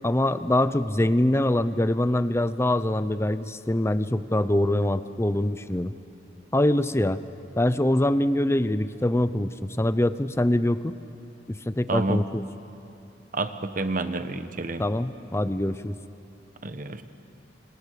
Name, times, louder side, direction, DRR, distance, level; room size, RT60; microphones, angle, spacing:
voice 1, 0.0-5.9 6.5-7.2 7.6-10.9 11.5-12.4 14.8-16.0, left 1 dB, 15° left, 13 dB, 0.7 m, -24 dB
voice 2, 11.9-12.2 13.3-14.8 16.6-17.0, right 2 dB, 50° right, 9 dB, 1.3 m, -29 dB
29.0 x 27.0 x 6.7 m, 3.0 s
head